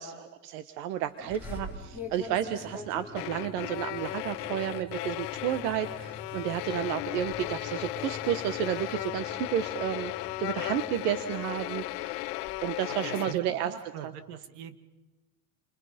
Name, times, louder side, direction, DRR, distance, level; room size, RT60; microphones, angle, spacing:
voice 1, 0.0-10.1 10.4-12.2 12.6-13.7, right 10 dB, 80° right, 11 dB, 1.5 m, -32 dB
sound 1, 1.2-13.4, left 4 dB, 15° left, 2.0 m, -49 dB
sound 2, 1.3-6.7 7.0-7.5 7.8-9.8 10.4-12.6, left 3 dB, 5° right, 6.4 m, -46 dB
sound 3, 3.1-13.3, left 19 dB, 85° left, 0.9 m, -36 dB
voice 2, 12.9-14.8, right 9 dB, 60° right, 10 dB, 2.2 m, -42 dB
30.0 x 25.5 x 5.2 m, 1.1 s
supercardioid pair, 145°, 46 cm